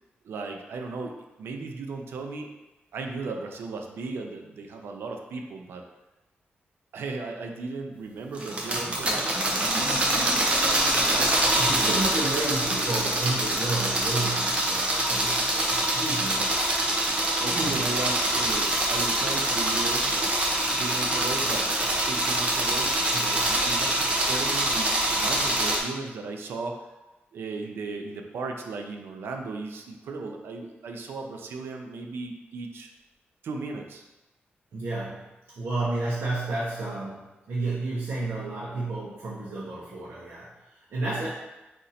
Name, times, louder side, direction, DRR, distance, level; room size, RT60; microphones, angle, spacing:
voice 1, 0.2-2.5 2.9-5.8 6.9-10.5 11.0-12.1 12.6-12.8 17.4-20.3 20.7-21.7 22.0-23.0 23.4-26.9 27.3-32.9 33.4-34.1, right 3 dB, 85° right, 3 dB, 0.5 m, -36 dB
sound 1, 8.3-25.8, right 1 dB, 30° right, 0.7 m, -25 dB
voice 2, 11.6-16.6 17.5-17.8 23.1-23.5 34.7-35.3 35.6-41.3, right 2 dB, 65° right, -7 dB, 0.8 m, -31 dB
4.2 x 2.6 x 4.1 m, 1.0 s
wide cardioid pair, 165°, 4 cm